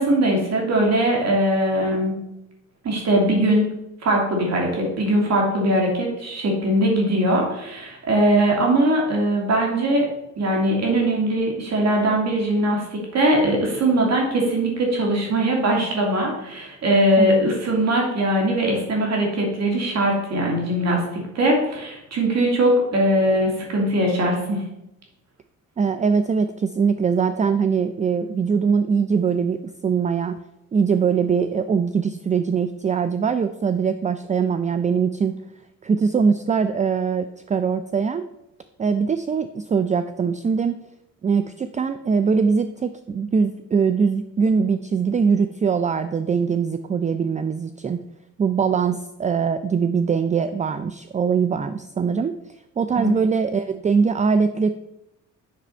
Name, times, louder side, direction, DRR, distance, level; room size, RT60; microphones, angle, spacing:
voice 1, 0.0-2.2 2.8-3.7 4.0-10.1 10.4-24.6 53.0-53.1, right 1 dB, 60° right, 0 dB, 2.7 m, -21 dB
voice 2, 25.8-30.4 30.7-35.3 35.8-38.2 38.8-40.8 41.2-48.0 48.4-52.3 52.8-54.7, right 6 dB, 25° right, 11 dB, 0.4 m, -22 dB
7.6 x 6.1 x 4.4 m, 0.86 s
cardioid pair, 90°, 30 cm